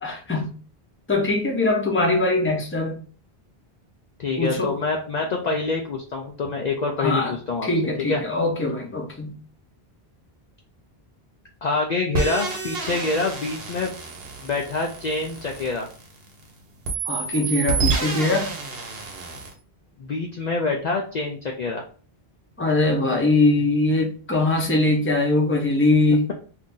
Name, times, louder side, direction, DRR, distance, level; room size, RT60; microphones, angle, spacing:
voice 1, 0.0-0.5 1.1-3.0 4.4-4.7 7.0-7.3 7.6-9.4 17.0-18.5 22.6-26.3, left 2 dB, 15° left, 0.6 m, -22 dB
voice 2, 4.2-7.7 8.0-8.2 11.6-13.9 14.4-15.9 20.0-21.8, left 3 dB, 55° left, 0.5 m, -26 dB
sound 1, 12.1-16.4 16.8-19.5, right 4 dB, 70° right, 1.0 m, -29 dB
2.7 x 2.5 x 3.6 m
omnidirectional pair, 1.0 m